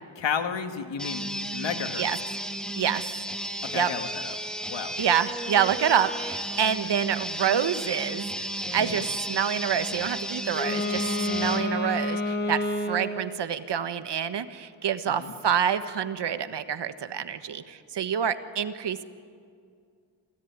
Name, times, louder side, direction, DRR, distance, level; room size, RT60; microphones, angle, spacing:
voice 1, 0.2-1.2 1.5-2.1 3.7-4.3 4.7-4.9 8.8-9.1 15.1-15.3, left 7 dB, 70° left, 7 dB, 2.0 m, -32 dB
sound 1, 1.0-11.7, equal, ahead, 2.1 m, -33 dB
voice 2, 5.0-19.0, right 8 dB, 60° right, 11 dB, 1.4 m, -27 dB
Wind instrument woodwind instrument, 10.5-13.4, left 1 dB, 20° left, 2.3 m, -29 dB
27.5 x 17.5 x 9.6 m, 2.3 s
cardioid pair, 85°, 46 cm